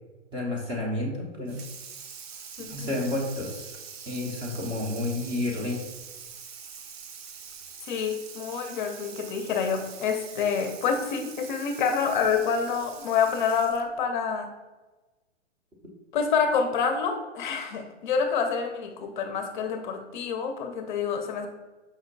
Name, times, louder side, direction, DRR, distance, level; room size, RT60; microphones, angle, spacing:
voice 1, 0.3-1.6 2.7-3.7 4.1-5.8, left 2 dB, 15° right, -2 dB, 0.6 m, -30 dB
Water tap faucet / Sink (filling or washing), 1.5-14.0, right 6 dB, 60° right, 0.6 m, -44 dB
voice 2, 2.6-2.9 7.8-14.5 16.1-21.5, left 6 dB, 40° left, 5 dB, 0.6 m, -27 dB
5.1 x 2.1 x 3.9 m, 1.2 s
hypercardioid pair, 130°, 36 cm